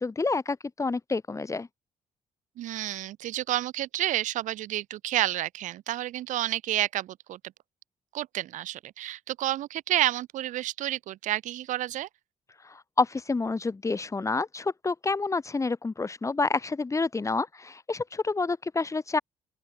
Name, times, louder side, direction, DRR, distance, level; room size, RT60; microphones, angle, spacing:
voice 1, 0.0-1.7 12.6-19.2, left 3 dB, 25° left, 6.2 m, -28 dB
voice 2, 2.6-7.4 8.1-12.1, right 14 dB, 85° right, 5.5 m, -30 dB
open air
cardioid pair, 95°, 13 cm